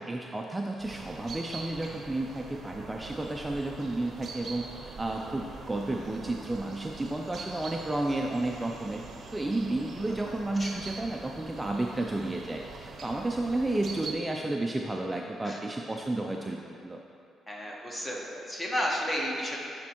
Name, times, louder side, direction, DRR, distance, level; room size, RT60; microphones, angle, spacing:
voice 1, 0.0-4.7 5.0-9.0 9.3-12.6 13.0-17.0, right 2 dB, 15° right, 1 dB, 0.3 m, -32 dB
sound 1, 0.8-14.1, right 4 dB, 55° right, 0.7 m, -44 dB
voice 2, 10.3-10.7 15.4-15.6 17.5-19.6, equal, 20° left, -2 dB, 1.2 m, -33 dB
10.5 x 4.2 x 3.0 m, 2.5 s
cardioid pair, 90°, 0 cm